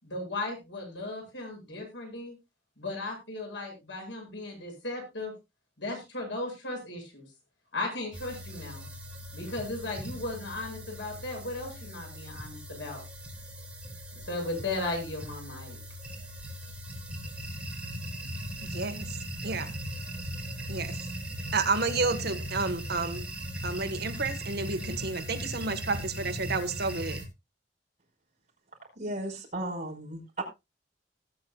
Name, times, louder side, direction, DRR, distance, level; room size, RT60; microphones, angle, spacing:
voice 1, 0.0-2.4 2.8-5.3 5.8-7.2 7.7-8.8 9.3-13.0 14.1-15.8, left 2 dB, 80° left, 7.8 m, -36 dB
sound 1, 8.1-27.3, equal, 5° right, 3.6 m, -39 dB
voice 2, 18.6-19.0 19.4-19.7 20.7-21.0 21.5-23.2 23.6-27.2, right 4 dB, 60° right, 1.5 m, -30 dB
voice 3, 29.0-30.4, right 1 dB, 40° right, 5.3 m, -35 dB
19.0 x 9.4 x 2.4 m
head